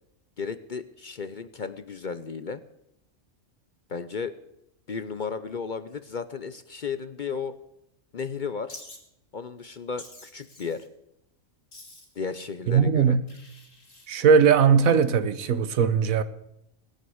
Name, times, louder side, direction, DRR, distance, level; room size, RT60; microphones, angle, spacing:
voice 1, 0.4-2.6 3.9-4.4 4.9-7.5 8.1-8.7 9.3-10.9 12.2-13.2, left 5 dB, 45° left, 0.7 m, -34 dB
Wild animals, 8.7-9.0 10.0-10.9 11.7-12.2 13.3-14.1, left 2 dB, 65° left, 3.0 m, -47 dB
voice 2, 12.7-13.2 14.1-16.2, right 6 dB, 85° right, 1.3 m, -19 dB
18.0 x 9.4 x 7.9 m
omnidirectional pair, 1.4 m